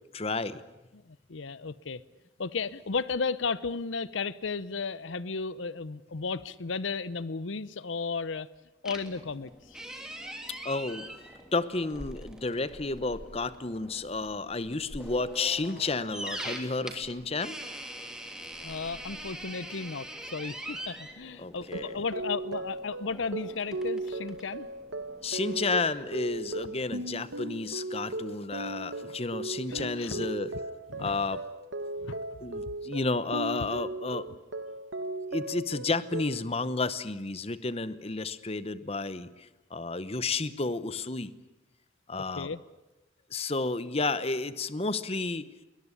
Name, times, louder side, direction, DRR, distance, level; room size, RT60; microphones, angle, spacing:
voice 1, 0.1-0.6 10.6-11.1 11.5-17.6 21.4-22.0 25.2-30.5 31.0-31.4 32.4-34.4 35.3-41.3 42.1-42.5 43.3-45.5, left 3 dB, 30° left, 15 dB, 0.9 m, -31 dB
voice 2, 1.1-2.0 2.4-8.5 8.8-9.8 18.6-24.7 29.7-30.3 30.9-31.2 32.0-32.2 42.2-42.6, left 4 dB, 80° left, 18 dB, 0.8 m, -34 dB
sound 1, 8.8-27.0, right 1 dB, 5° right, 3.1 m, -44 dB
sound 2, 21.6-36.4, right 2 dB, 80° right, 1.4 m, -37 dB
21.5 x 21.0 x 9.9 m, 1.0 s
head